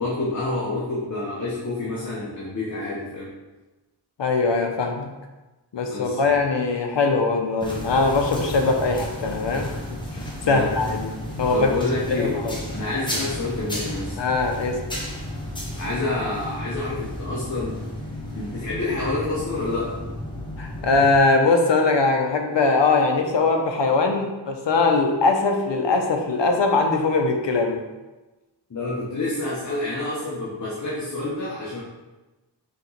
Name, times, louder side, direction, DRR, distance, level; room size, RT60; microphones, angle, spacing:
voice 1, 0.0-3.3 5.9-6.4 10.4-10.7 11.5-12.4 12.7-14.1 15.8-17.8 18.3-20.0 28.7-31.8, left 2 dB, 40° left, -6 dB, 0.9 m, -28 dB
voice 2, 4.2-5.1 5.7-11.1 11.4-11.7 12.1-12.6 14.2-14.8 20.6-27.8, left 3 dB, 80° left, 3 dB, 0.7 m, -21 dB
sound 1, 7.6-21.2, left 1 dB, 10° left, 0.9 m, -33 dB
4.3 x 3.0 x 3.9 m, 1.1 s
wide cardioid pair, 105°, 43 cm